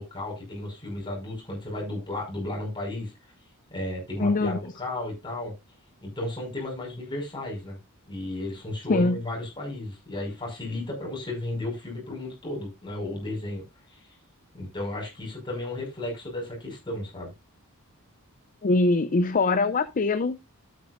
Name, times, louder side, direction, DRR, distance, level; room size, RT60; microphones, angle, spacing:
voice 1, 0.0-3.1 3.7-5.5 6.0-7.8 8.1-13.6 13.9-14.0 14.5-17.3, left 1 dB, 20° left, 5.5 m, -34 dB
voice 2, 4.2-4.6 8.9-9.2 18.6-20.4, left 3 dB, 35° left, 0.5 m, -22 dB
12.0 x 8.7 x 2.5 m
head